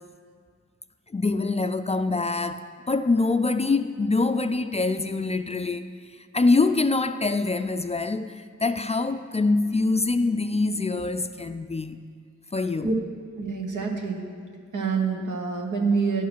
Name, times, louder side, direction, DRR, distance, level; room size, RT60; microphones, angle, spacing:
voice 1, 1.1-5.8 6.3-12.1 12.5-12.9, left 3 dB, 20° left, 0.3 m, -24 dB
voice 2, 13.4-14.2 14.7-16.3, right 4 dB, 80° right, 1.2 m, -26 dB
10.5 x 4.7 x 6.1 m
cardioid pair, 45°, 30 cm